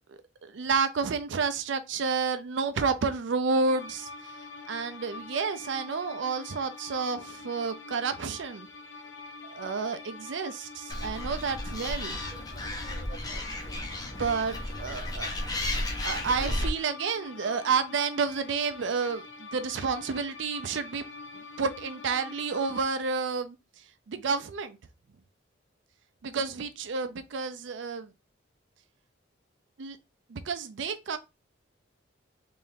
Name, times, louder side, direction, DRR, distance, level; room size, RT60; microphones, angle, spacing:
voice 1, 0.1-4.1 4.7-8.7 9.5-12.2 13.3-13.4 14.2-15.3 15.8-21.0 21.6-23.6 24.1-24.8 26.2-28.1 29.8-30.0 30.3-31.2, right 5 dB, 70° right, 0.4 m, -30 dB
sound 1, 3.7-22.8, left 3 dB, 80° left, 0.6 m, -45 dB
Animal, 10.9-16.7, left 1 dB, 20° left, 0.7 m, -33 dB
3.6 x 3.4 x 2.7 m
head